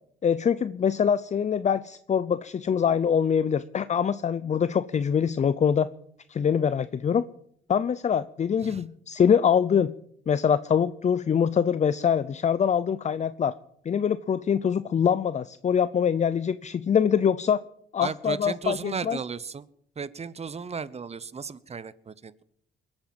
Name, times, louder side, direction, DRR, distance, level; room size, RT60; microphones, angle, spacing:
voice 1, 0.2-5.9 6.3-7.2 7.7-9.9 10.3-13.5 13.9-17.6 17.9-19.2, left 7 dB, 35° left, 15 dB, 0.6 m, -24 dB
voice 2, 18.0-19.7 20.0-22.4, right 5 dB, 30° right, 18 dB, 0.9 m, -35 dB
21.5 x 8.9 x 7.4 m, 0.69 s
cardioid pair, 90°, 20 cm